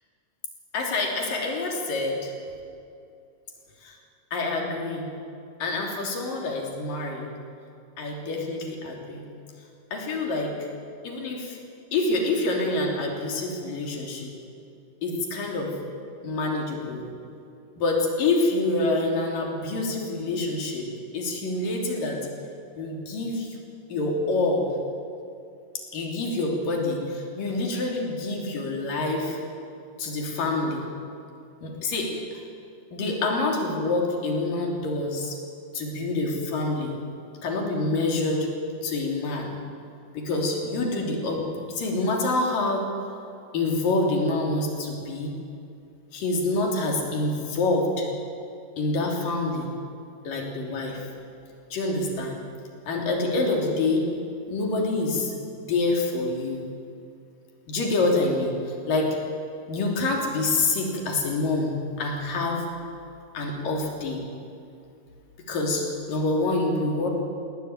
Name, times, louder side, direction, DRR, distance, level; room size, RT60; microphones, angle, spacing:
voice 1, 0.7-2.3 3.8-3.9 4.3-5.1 5.6-7.3 8.0-9.3 9.9-10.5 11.0-11.6 11.9-14.3 15.0-15.8 16.2-17.1 17.8-20.9 21.1-22.2 22.8-23.5 23.9-24.7 25.9-29.4 30.0-30.8 31.6-32.1 32.9-35.4 35.7-36.9 37.4-38.5 38.8-39.5 40.1-42.9 43.5-45.4 46.1-48.1 48.8-49.7 50.2-51.0 51.7-52.4 52.9-54.0 54.5-55.3 55.7-56.6 57.7-58.5 58.9-59.2 59.7-61.7 62.0-62.6 63.3-64.2 65.5-67.1, left 2 dB, 85° left, 0 dB, 4.8 m, -26 dB
20.5 x 17.5 x 9.6 m, 2.5 s
omnidirectional pair, 3.8 m